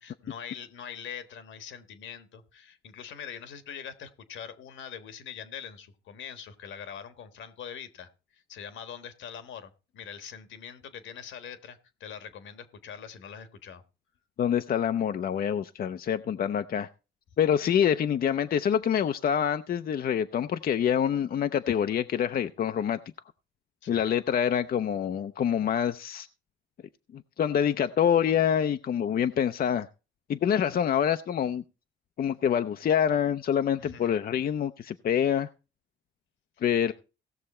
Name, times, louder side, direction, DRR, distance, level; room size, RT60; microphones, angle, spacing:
voice 1, 0.0-13.8 23.8-24.2 33.8-34.2 36.9-37.0, left 8 dB, 75° left, 1.5 m, -43 dB
voice 2, 14.4-16.9 17.4-23.0 23.9-26.3 27.1-29.9 30.3-31.6 32.2-35.5 36.6-36.9, left 9 dB, 50° left, 0.6 m, -26 dB
17.0 x 6.5 x 4.3 m
cardioid pair, 90°, 20 cm